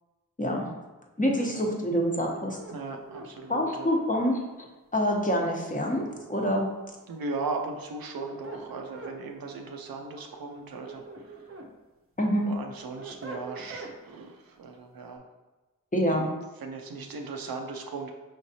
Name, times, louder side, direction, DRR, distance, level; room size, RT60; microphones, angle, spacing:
voice 1, 0.4-0.7 1.2-2.6 3.5-4.4 4.9-6.7 12.2-12.5 15.9-16.3, equal, 25° left, 0 dB, 0.8 m, -26 dB
voice 2, 1.4-1.7 2.7-3.9 7.1-11.6 12.4-15.3 16.6-18.1, right 3 dB, 85° right, 3 dB, 0.6 m, -37 dB
sound 1, 2.3-4.4 5.6-6.8 7.9-9.2 10.6-11.7 12.2-14.0, right 3 dB, 40° right, 0.6 m, -43 dB
5.0 x 3.2 x 2.7 m, 1.1 s
cardioid pair, 50°, 34 cm